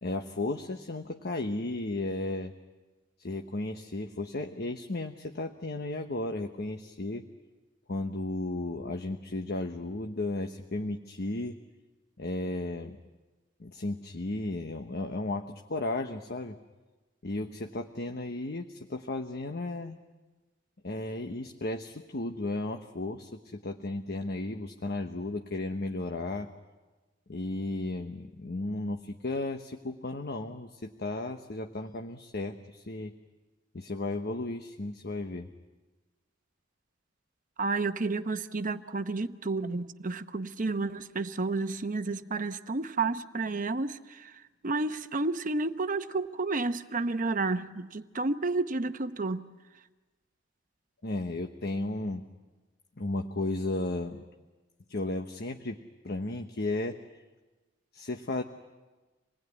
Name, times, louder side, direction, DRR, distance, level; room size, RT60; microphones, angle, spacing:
voice 1, 0.0-2.5 3.2-7.2 7.9-11.6 12.2-13.0 13.6-16.6 17.2-20.0 20.8-26.5 27.3-33.1 33.7-35.5 51.0-52.2 53.0-54.2 54.9-55.8 56.0-57.0 57.9-58.4, left 2 dB, 55° left, 1.1 m, -34 dB
voice 2, 37.6-49.5, right 3 dB, 45° right, 0.9 m, -31 dB
27.0 x 19.5 x 9.6 m
head